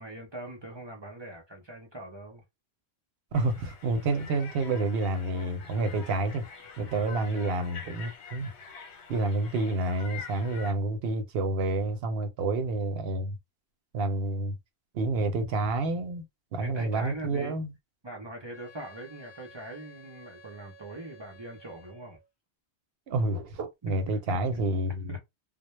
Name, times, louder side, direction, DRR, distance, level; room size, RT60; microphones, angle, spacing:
voice 1, 0.0-2.4 7.3-7.7 16.6-17.6 18.0-22.2 23.8-25.2, right 1 dB, 35° right, 0.5 m, -42 dB
sound 1, 3.3-10.7, left 5 dB, 80° left, 1.0 m, -46 dB
voice 2, 3.3-6.5 6.8-8.5 9.1-13.4 13.9-14.6 14.9-16.2 16.5-17.7 23.1-25.2, right 2 dB, 65° right, 0.8 m, -29 dB
Wind instrument woodwind instrument, 18.5-22.3, equal, 35° left, 0.5 m, -53 dB
2.1 x 2.0 x 3.0 m
omnidirectional pair, 1.1 m